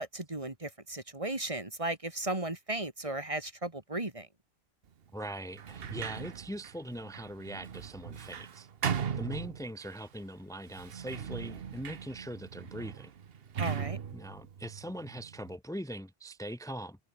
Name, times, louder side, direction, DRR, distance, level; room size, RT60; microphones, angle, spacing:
voice 1, 0.0-4.3 13.6-14.0, right 2 dB, 35° right, 2.3 m, -35 dB
voice 2, 5.1-8.7 9.1-13.1 14.1-17.0, equal, 5° left, 1.3 m, -41 dB
Sliding door, 5.5-10.0 10.7-15.5, right 7 dB, 70° right, 1.2 m, -39 dB
omnidirectional pair, 1.0 m